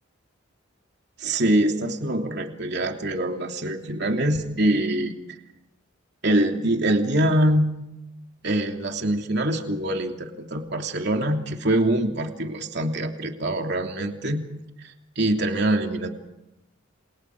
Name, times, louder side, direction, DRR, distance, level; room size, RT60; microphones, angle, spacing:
voice 1, 1.2-5.1 6.2-7.7 8.4-14.4 14.8-16.1, right 1 dB, 55° right, 3 dB, 3.1 m, -24 dB
29.5 x 28.5 x 4.9 m, 0.89 s
head